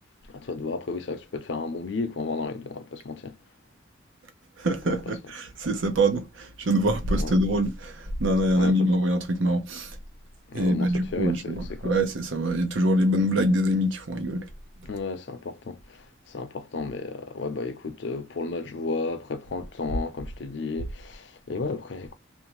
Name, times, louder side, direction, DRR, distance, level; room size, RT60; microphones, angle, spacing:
voice 1, 0.3-3.4 4.9-5.1 7.1-7.3 8.6-8.8 10.5-11.9 14.8-22.1, left 3 dB, 70° left, 0.5 m, -33 dB
voice 2, 4.6-10.0 10.5-14.5, right 1 dB, 90° right, 0.7 m, -24 dB
2.6 x 2.2 x 2.9 m
head